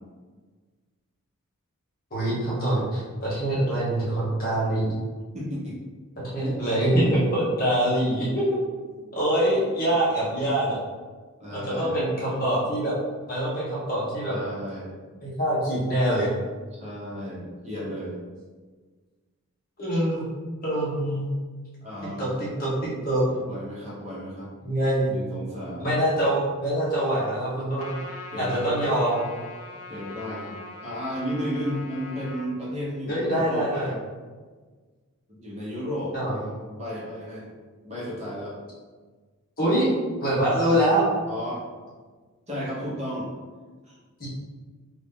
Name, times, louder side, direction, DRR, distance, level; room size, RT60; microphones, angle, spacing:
voice 1, 2.1-4.9 6.3-8.4 9.1-10.8 11.5-12.9 13.3-14.3 15.2-16.3 19.8-20.2 20.6-21.2 22.2-23.2 24.6-25.2 25.8-27.9 28.4-29.3 33.1-33.9 36.1-36.4 39.6-39.9 40.2-41.1 44.2-44.3, right 1 dB, 40° left, -7 dB, 1.2 m, -24 dB
voice 2, 5.3-5.8 6.4-6.6 11.4-12.1 14.3-15.0 16.8-18.2 21.8-22.3 23.4-24.5 25.1-25.9 28.3-28.6 29.9-30.6 30.8-34.0 35.3-37.5 37.8-38.6 41.3-41.6 42.5-43.3 43.9-44.0, equal, 30° right, -7 dB, 1.0 m, -33 dB
Trumpet, 27.8-32.5, left 2 dB, 80° left, 0.5 m, -42 dB
3.0 x 2.6 x 3.7 m, 1.4 s
head